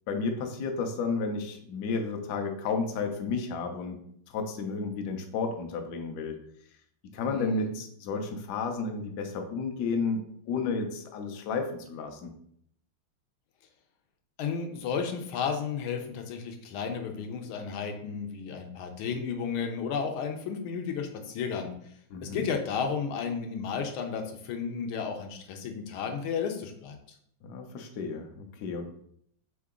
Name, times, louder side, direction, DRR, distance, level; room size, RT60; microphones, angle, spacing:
voice 1, 0.1-4.0 4.3-6.4 7.1-12.3 22.1-22.5 27.4-28.8, left 4 dB, 70° left, 5 dB, 1.0 m, -32 dB
voice 2, 7.3-7.7 14.4-21.7 22.2-27.0, left 6 dB, 85° left, 4 dB, 1.5 m, -33 dB
3.8 x 3.7 x 3.6 m, 0.67 s
omnidirectional pair, 2.2 m